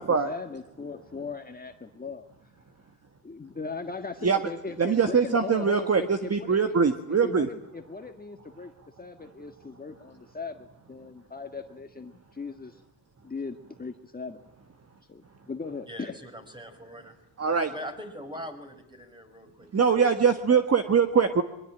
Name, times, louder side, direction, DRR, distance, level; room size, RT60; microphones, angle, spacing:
voice 1, 0.0-2.3 3.2-6.8 7.1-8.7 9.0-10.6 10.9-12.8 13.2-14.4 15.1-16.1, left 4 dB, 20° left, 5 dB, 1.7 m, -38 dB
voice 2, 4.8-7.5 17.4-17.7 19.7-21.4, right 6 dB, 35° right, 8 dB, 1.7 m, -22 dB
voice 3, 15.9-17.2 17.7-20.1 20.5-20.6, equal, 10° right, 6 dB, 5.6 m, -42 dB
23.5 x 23.5 x 9.0 m, 0.85 s
cardioid pair, 105°, 46 cm